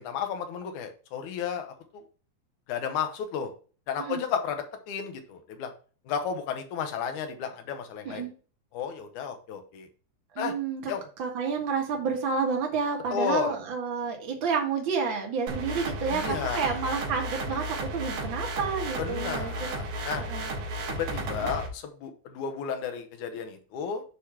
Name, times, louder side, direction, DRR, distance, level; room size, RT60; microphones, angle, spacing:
voice 1, 0.0-2.0 2.7-3.5 3.9-5.7 6.1-8.3 8.7-9.9 10.4-10.5 10.9-11.0 13.1-13.6 16.1-16.8 19.0-20.2 20.9-24.0, left 7 dB, 70° left, 6 dB, 2.2 m, -33 dB
voice 2, 10.4-10.9 11.2-19.7 20.2-20.5 21.4-21.5, right 5 dB, 45° right, 1 dB, 2.0 m, -30 dB
sound 1, 15.5-21.7, right 1 dB, 80° right, 3.4 m, -33 dB
8.5 x 3.2 x 5.7 m, 0.39 s
omnidirectional pair, 4.1 m